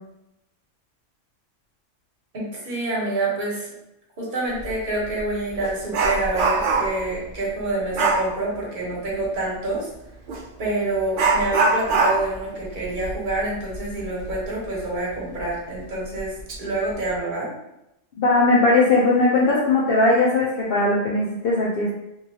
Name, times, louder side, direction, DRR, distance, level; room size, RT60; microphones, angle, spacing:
voice 1, 2.3-3.7 4.2-9.9 10.6-17.5, right 2 dB, 40° right, -5 dB, 1.1 m, -27 dB
Dog, 4.6-4.7 5.2-7.1 7.9-8.3 10.3-10.4 11.1-14.4 14.8-14.9 15.4-15.5 16.1-16.6 16.9-17.2, right 3 dB, 65° right, 0.5 m, -23 dB
voice 2, 18.2-21.9, left 2 dB, 60° left, -5 dB, 0.7 m, -19 dB
2.9 x 2.7 x 2.7 m, 0.88 s
omnidirectional pair, 1.3 m